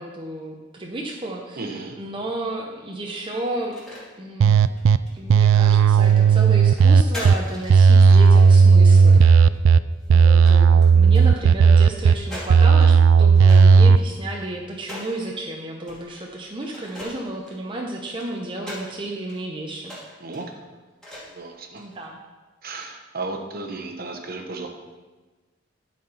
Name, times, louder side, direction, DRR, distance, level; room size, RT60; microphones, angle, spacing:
voice 1, 0.0-3.8 4.2-4.6 5.1-9.5 10.1-20.0 21.8-22.2, right 2 dB, 25° right, -1 dB, 0.7 m, -32 dB
voice 2, 1.6-1.9 20.2-20.5 21.3-21.8 22.6-24.7, right 3 dB, 50° right, 3 dB, 1.0 m, -34 dB
sound 1, 3.5-4.0 4.5-5.5 6.0-9.6 10.0-10.5 10.8-12.9 13.3-15.2 15.9-16.3 16.6-18.9 19.3-19.4 19.8-20.4 21.0-21.4 21.8-22.0, left 1 dB, 5° left, 2.4 m, -40 dB
sound 2, 4.4-5.0 5.3-7.3 7.7-9.8 10.1-12.1 12.5-14.0, right 5 dB, 85° right, 0.3 m, -13 dB
10.5 x 4.3 x 5.6 m, 1.2 s
head